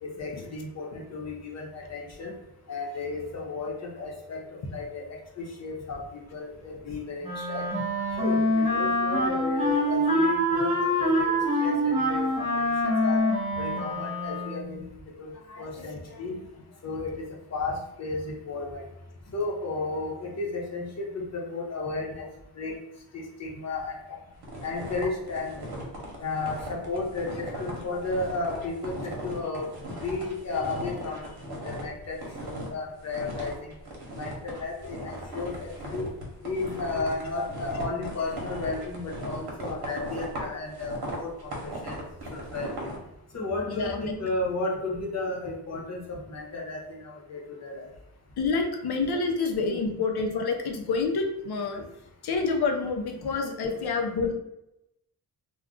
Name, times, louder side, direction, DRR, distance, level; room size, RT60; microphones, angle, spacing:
voice 1, 0.0-2.3 2.7-4.4 4.7-7.6 8.2-13.2 13.6-14.9 15.2-16.4 16.8-18.8 19.3-22.2 22.5-22.8 23.1-24.1 24.6-25.7 26.2-29.7 30.0-31.3 31.6-33.5 34.2-36.1 36.4-42.0 42.3-42.9 43.3-46.0 46.3-47.9, left 3 dB, 45° left, -2 dB, 0.8 m, -33 dB
Wind instrument woodwind instrument, 7.2-14.7, equal, 15° right, 1.0 m, -25 dB
sound 1, 24.4-31.9 32.1-32.7 33.1-43.0, right 1 dB, 75° right, 0.9 m, -38 dB
voice 2, 43.7-44.3 48.4-51.9 52.2-54.3, left 4 dB, 75° left, 3 dB, 0.6 m, -28 dB
2.4 x 2.2 x 3.6 m, 0.86 s
wide cardioid pair, 130°, 39 cm